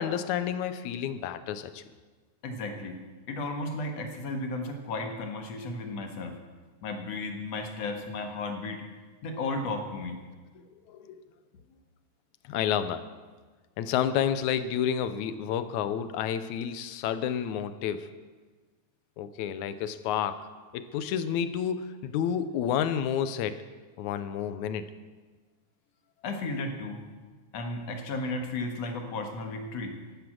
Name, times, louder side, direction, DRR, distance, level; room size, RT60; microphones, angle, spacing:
voice 1, 0.0-1.8 10.6-11.2 12.4-13.1 13.8-18.1 19.2-20.5 20.7-23.6 24.0-24.9, left 9 dB, 75° left, 12 dB, 1.9 m, -30 dB
voice 2, 2.4-3.0 3.3-6.4 6.8-8.8 9.2-10.2 26.2-27.0 27.5-30.0, left 2 dB, 60° left, 4 dB, 2.4 m, -34 dB
12.0 x 11.5 x 7.6 m, 1.4 s
omnidirectional pair, 3.7 m